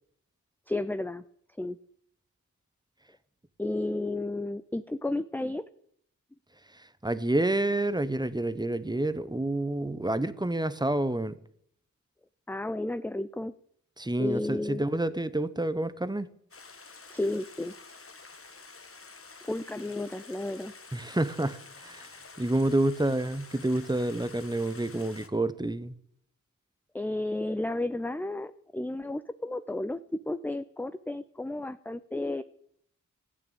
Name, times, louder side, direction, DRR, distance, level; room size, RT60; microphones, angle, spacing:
voice 1, 0.7-1.2 1.6-1.8 3.6-5.6 12.5-13.5 14.2-14.8 17.1-17.7 19.4-20.7 26.9-32.4, left 2 dB, 5° left, 12 dB, 0.5 m, -32 dB
voice 2, 7.0-11.3 14.0-16.3 20.9-22.1 22.4-25.9, right 1 dB, 15° right, 14 dB, 0.9 m, -28 dB
Stream, 16.5-25.3, left 4 dB, 40° left, 1.3 m, -49 dB
14.0 x 8.7 x 8.8 m, 0.69 s
wide cardioid pair, 70°, 33 cm